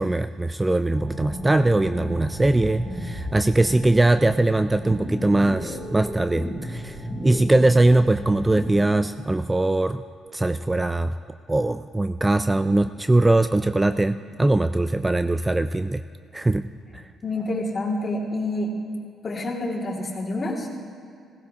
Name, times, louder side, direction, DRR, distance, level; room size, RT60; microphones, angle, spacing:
voice 1, 0.0-7.0 7.2-10.0 10.3-11.1 11.5-16.0 16.3-16.7 16.9-17.0, right 2 dB, 15° right, 10 dB, 0.3 m, -21 dB
sound 1, 0.9-8.8, equal, ahead, 3.5 m, -33 dB
voice 2, 17.2-18.8 19.2-20.7, left 1 dB, 35° left, -3 dB, 2.3 m, -28 dB
16.0 x 16.0 x 2.9 m, 2.3 s
cardioid pair, 90°, 0 cm